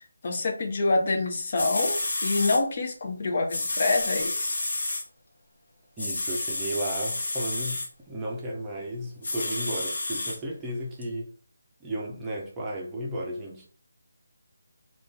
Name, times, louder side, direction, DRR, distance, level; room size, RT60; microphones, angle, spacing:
voice 1, 0.0-4.6, left 3 dB, 40° left, 0.6 m, -27 dB
sound 1, 1.3-1.4 1.6-2.6 3.5-5.0 6.0-7.9 9.2-10.4 11.0-11.1, left 2 dB, 65° left, 0.9 m, -30 dB
voice 2, 6.0-11.3 11.8-13.7, right 1 dB, 10° right, 0.6 m, -34 dB
2.5 x 2.4 x 3.8 m
figure-of-eight pair, 160°, 0 cm